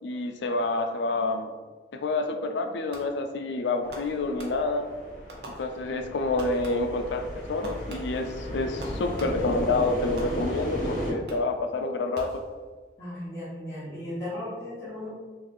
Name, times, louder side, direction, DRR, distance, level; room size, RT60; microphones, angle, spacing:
voice 1, 0.0-1.5 1.9-4.8 5.5-12.4, left 3 dB, 80° left, 5 dB, 0.4 m, -28 dB
Fireworks, 2.9-3.4 3.9-4.9 5.3-6.1 6.4-7.1 7.6-9.6 10.2-10.8 11.3-11.7 12.1-12.9, right 1 dB, 65° right, 0.7 m, -45 dB
sound 1, 3.8-11.1, equal, 40° left, 1.4 m, -35 dB
voice 2, 13.0-15.1, left 1 dB, 15° left, -13 dB, 1.0 m, -36 dB
3.1 x 2.6 x 3.8 m, 1.4 s
head